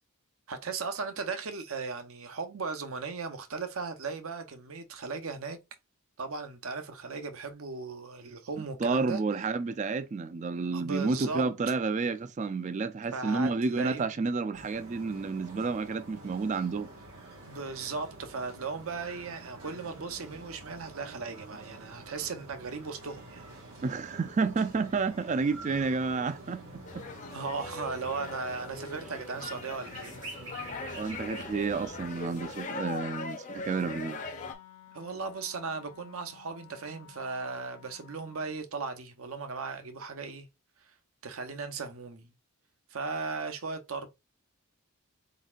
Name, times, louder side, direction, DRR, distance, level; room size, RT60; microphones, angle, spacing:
voice 1, 0.5-5.6 6.2-9.2 10.7-11.5 13.1-14.1 17.5-23.4 27.3-30.2 34.9-40.5 41.2-42.3 42.9-44.1, right 4 dB, 70° right, 0.7 m, -37 dB
voice 2, 8.8-16.9 23.8-27.1 31.0-34.2, right 4 dB, 35° right, 0.3 m, -30 dB
sound 1, 14.5-32.6, right 2 dB, 90° right, 1.5 m, -48 dB
sound 2, 26.8-34.5, left 3 dB, 35° left, 0.6 m, -41 dB
Wind instrument woodwind instrument, 33.8-38.7, left 10 dB, 80° left, 0.7 m, -53 dB
4.2 x 3.9 x 2.4 m
head